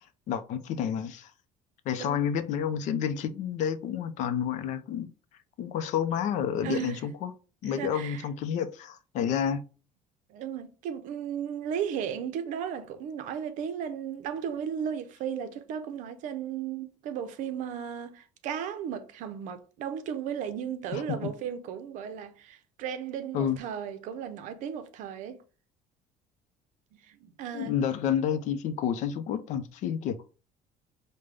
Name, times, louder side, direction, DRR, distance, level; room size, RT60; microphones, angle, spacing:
voice 1, 0.3-1.3 1.9-5.1 5.6-7.3 7.6-9.6 20.9-21.2 23.3-23.6 27.5-30.2, left 8 dB, 60° left, 0.5 m, -29 dB
voice 2, 6.6-7.0 7.6-8.3 10.3-25.4 26.9-27.7, right 8 dB, 65° right, 0.7 m, -35 dB
5.2 x 2.2 x 3.3 m
cardioid pair, 150°, 14 cm